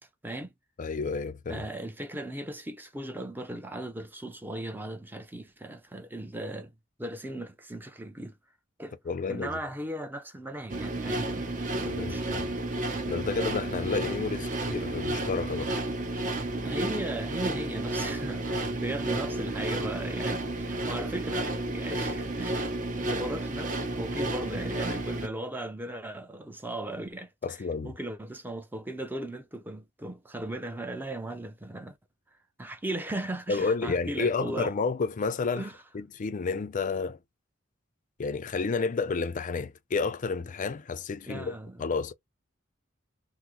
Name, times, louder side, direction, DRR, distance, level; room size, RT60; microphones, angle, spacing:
voice 1, 0.8-1.6 9.1-9.6 11.9-12.5 13.1-15.7 27.4-27.9 33.5-35.7 35.9-37.2 38.2-42.1, left 4 dB, 40° left, 0.4 m, -31 dB
voice 2, 1.5-6.7 7.0-8.3 8.8-9.0 9.3-12.4 16.6-27.6 27.8-32.0 32.6-34.7 35.6-35.8 41.3-41.8, right 1 dB, 10° right, 0.5 m, -37 dB
sound 1, 10.7-25.3, right 2 dB, 40° right, 0.8 m, -32 dB
3.6 x 2.0 x 2.9 m
head